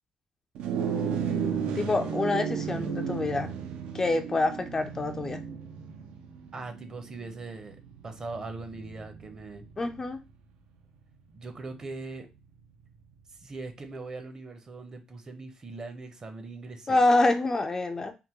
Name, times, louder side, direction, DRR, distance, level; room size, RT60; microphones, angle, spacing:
sound 1, 0.5-10.1, right 7 dB, 85° right, 0.5 m, -34 dB
voice 1, 1.8-3.5 3.9-5.4 9.8-10.2 16.9-18.1, left 2 dB, 25° left, 0.3 m, -26 dB
voice 2, 6.5-7.8 8.0-9.6 11.3-12.3 13.4-17.0, right 3 dB, 35° right, 0.7 m, -41 dB
3.5 x 2.2 x 2.9 m
cardioid pair, 115°, 2 cm